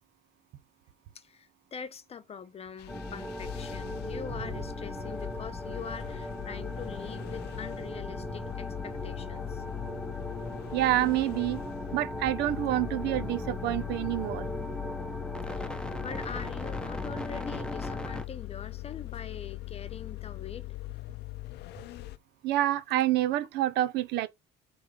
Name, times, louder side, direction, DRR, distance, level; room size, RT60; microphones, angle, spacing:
voice 1, 1.1-9.6 15.6-20.6, left 7 dB, 35° left, 0.9 m, -43 dB
sound 1, 2.8-22.2, left 18 dB, 80° left, 0.6 m, -41 dB
sound 2, 2.9-18.2, left 1 dB, 5° left, 1.0 m, -38 dB
voice 2, 10.7-11.6 11.9-14.5 22.4-24.3, right 14 dB, 85° right, 0.8 m, -27 dB
8.1 x 3.4 x 5.1 m
cardioid pair, 110°, 17 cm